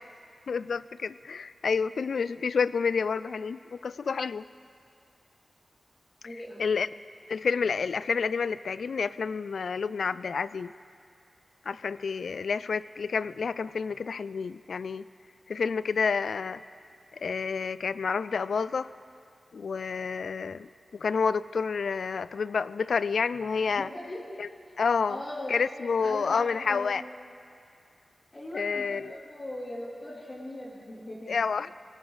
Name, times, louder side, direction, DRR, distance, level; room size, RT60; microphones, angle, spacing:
voice 1, 0.5-4.5 6.6-6.9 7.3-10.7 11.7-15.0 15.5-16.6 17.1-18.9 19.5-20.7 20.9-23.9 24.4-24.5 24.8-25.2 25.5-27.0 28.5-29.1 31.3-31.7, left 5 dB, 85° left, 16 dB, 0.3 m, -29 dB
voice 2, 6.2-6.6 23.8-24.2 25.1-25.5 26.0-27.0 28.3-31.4, left 1 dB, 35° left, -9 dB, 3.2 m, -39 dB
19.0 x 18.0 x 4.1 m, 2.3 s
wide cardioid pair, 105°, 0 cm